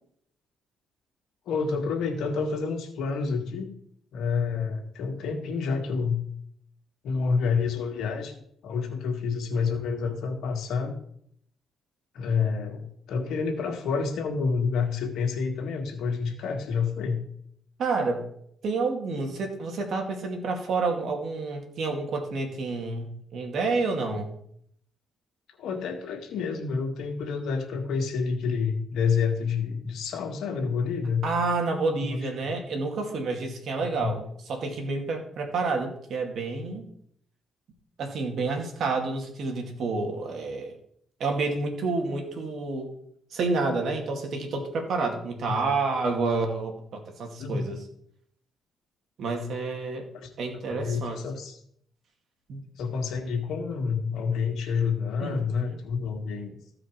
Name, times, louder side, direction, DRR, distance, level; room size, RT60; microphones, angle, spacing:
voice 1, 1.5-3.7 4.1-6.2 7.0-8.4 8.6-11.0 12.1-17.2 25.6-31.3 32.0-32.6 33.8-34.1 45.6-45.8 47.4-47.8 50.2-50.3 50.7-51.6 52.8-56.6, left 5 dB, 80° left, 3 dB, 1.8 m, -28 dB
voice 2, 17.8-18.2 18.6-24.3 31.2-36.9 38.0-40.7 41.2-42.9 43.3-47.8 49.2-50.1 50.4-51.2 52.5-52.6 55.2-55.8, right 3 dB, 65° right, 3 dB, 2.3 m, -29 dB
15.0 x 5.0 x 4.6 m, 0.67 s
cardioid pair, 90°, 0 cm